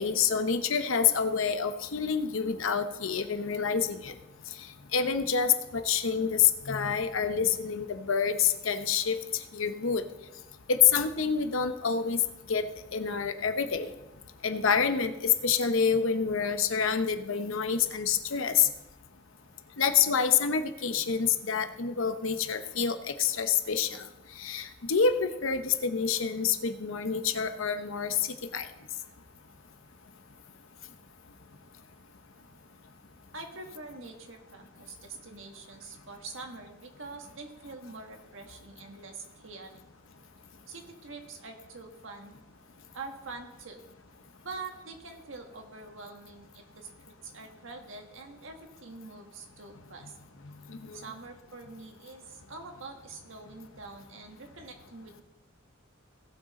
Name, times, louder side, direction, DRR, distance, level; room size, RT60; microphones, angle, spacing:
voice 1, 0.0-4.1 4.9-9.2 9.5-10.0 10.7-12.2 12.5-12.6 12.9-13.9 14.4-18.7 19.8-24.1 24.4-28.2 28.5-28.7 50.7-51.0, left 6 dB, 75° left, 10 dB, 0.8 m, -27 dB
voice 2, 33.3-39.7 40.7-42.3 42.9-43.8 44.4-46.9 47.2-50.1 50.9-55.2, right 3 dB, 70° right, 3 dB, 1.6 m, -45 dB
17.5 x 6.4 x 4.2 m, 0.98 s
head